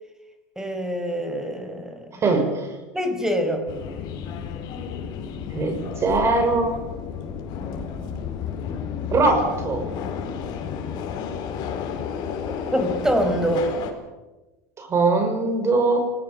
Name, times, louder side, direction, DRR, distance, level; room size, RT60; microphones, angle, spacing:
voice 1, 0.5-2.2 2.9-3.7 12.7-13.7, equal, 5° right, 7 dB, 5.0 m, -25 dB
voice 2, 2.2-2.7 5.5-6.8 9.1-9.8 14.8-16.0, right 3 dB, 35° right, 6 dB, 6.0 m, -21 dB
Subway metro underground, 3.7-13.9, left 7 dB, 55° left, 4.8 m, -32 dB
28.5 x 20.0 x 7.0 m, 1.1 s
supercardioid pair, 105°, 9 cm